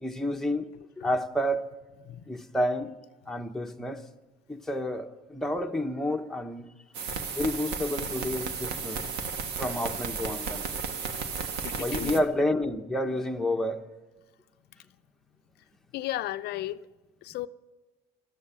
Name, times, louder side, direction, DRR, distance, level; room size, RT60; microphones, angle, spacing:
voice 1, 0.0-0.7 1.0-1.7 2.3-2.9 3.3-4.0 4.5-6.7 7.3-9.0 9.6-10.7 11.8-13.8, left 1 dB, ahead, 1.0 m, -29 dB
voice 2, 2.0-2.4 11.6-12.2 15.9-16.8 17.2-17.5, left 15 dB, 75° left, 0.5 m, -34 dB
sound 1, 6.9-12.2, right 5 dB, 80° right, 1.5 m, -34 dB
14.5 x 13.0 x 7.3 m
cardioid pair, 110°, 17 cm